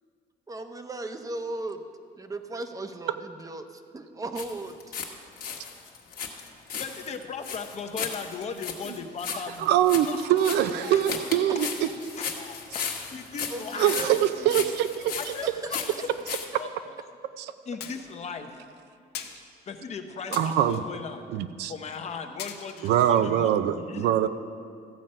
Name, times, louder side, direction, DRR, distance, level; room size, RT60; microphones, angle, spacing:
voice 1, 0.5-1.8 2.2-4.8 13.5-14.7 15.4-15.8, right 2 dB, 20° right, 7 dB, 0.8 m, -37 dB
sound 1, 4.3-5.1 5.4-16.5, left 6 dB, 55° left, 1.5 m, -36 dB
voice 2, 6.8-9.7 10.1-11.7 12.2-14.0 15.2-15.8 16.6-16.7 17.7-18.5 19.7-21.3 21.7-24.1, left 5 dB, 40° left, 6 dB, 1.0 m, -38 dB
voice 3, 9.6-11.9 13.8-14.9 17.4-17.5 20.3-20.8 21.3-21.7 22.8-24.3, right 11 dB, 80° right, 11 dB, 0.6 m, -23 dB
sound 2, 17.8-18.2 19.1-19.4 20.3-20.8 21.9-22.0 22.4-23.1, left 8 dB, 70° left, 1.0 m, -40 dB
14.5 x 7.4 x 5.5 m, 2.3 s
cardioid pair, 110°, 17 cm